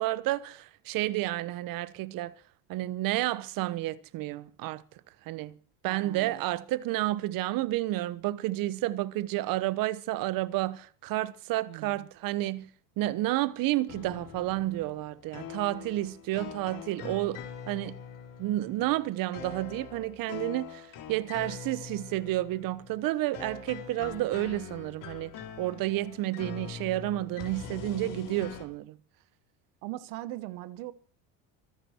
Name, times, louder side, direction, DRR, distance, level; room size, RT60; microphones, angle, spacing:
voice 1, 0.0-2.3 2.7-4.8 5.2-5.6 5.8-18.0 18.4-25.3 25.6-29.0, right 16 dB, 60° right, 1.1 m, -31 dB
voice 2, 5.8-6.4 11.7-12.1 29.8-30.9, right 16 dB, 80° right, 1.3 m, -40 dB
sound 1, 13.9-28.7, left 7 dB, 55° left, 3.6 m, -43 dB
26.0 x 10.5 x 4.5 m
supercardioid pair, 120°, 39 cm